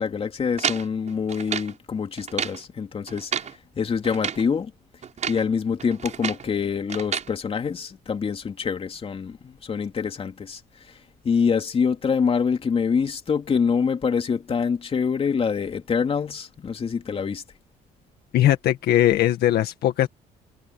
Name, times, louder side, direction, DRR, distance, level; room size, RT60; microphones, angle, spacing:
voice 1, 0.0-3.3 3.7-4.7 5.3-10.6 11.2-17.4, left 6 dB, 35° left, 3.2 m, -25 dB
sound 1, 0.6-1.8 2.2-2.6 3.1-3.6 4.0-4.5 5.0-5.5 5.8-6.5 6.9-7.3, right 7 dB, 45° right, 6.4 m, -30 dB
voice 2, 18.3-20.1, left 12 dB, 70° left, 1.9 m, -20 dB
cardioid pair, 110°, 17 cm